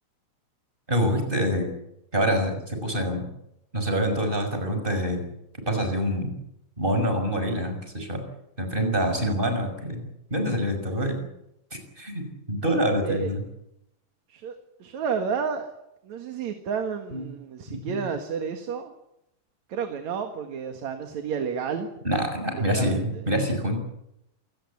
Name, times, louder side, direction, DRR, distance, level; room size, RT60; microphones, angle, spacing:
voice 1, 0.9-1.7 2.1-3.3 3.7-5.2 5.7-6.3 6.8-8.2 8.6-10.0 10.3-11.2 11.7-13.4 17.1-17.2 17.7-18.0 22.0-23.8, equal, 15° right, 6 dB, 5.8 m, -26 dB
voice 2, 14.3-15.7 16.0-18.9 19.7-21.9 22.5-23.3, right 6 dB, 70° right, 6 dB, 3.0 m, -31 dB
27.5 x 17.5 x 8.5 m, 0.84 s
omnidirectional pair, 3.4 m